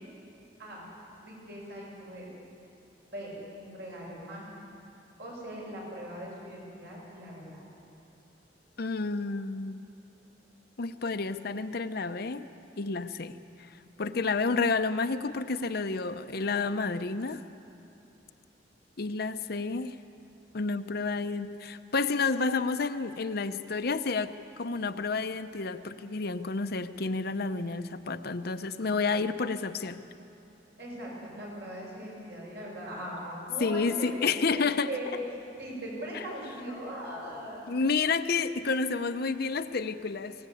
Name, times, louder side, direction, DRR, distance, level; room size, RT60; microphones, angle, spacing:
voice 1, 1.2-2.3 3.1-4.5 5.2-7.6 30.8-35.2 35.6-37.7, right 1 dB, 65° right, -4 dB, 7.9 m, -40 dB
voice 2, 8.8-9.8 10.8-12.4 12.8-13.4 14.0-17.4 19.0-19.9 20.5-30.0 33.6-34.9 37.7-40.3, left 4 dB, 60° left, 9 dB, 0.7 m, -30 dB
22.0 x 18.0 x 8.5 m, 2.7 s
head